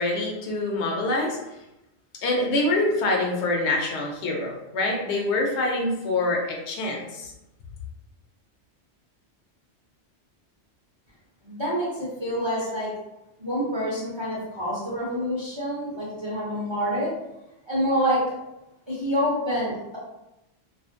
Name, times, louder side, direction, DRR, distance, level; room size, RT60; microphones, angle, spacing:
voice 1, 0.0-1.4 2.2-7.3, left 2 dB, 75° left, 0 dB, 0.9 m, -25 dB
voice 2, 11.4-12.9 13.4-17.1 17.7-18.2 18.9-20.0, equal, 35° right, -7 dB, 0.5 m, -27 dB
2.5 x 2.4 x 2.5 m, 0.93 s
omnidirectional pair, 1.2 m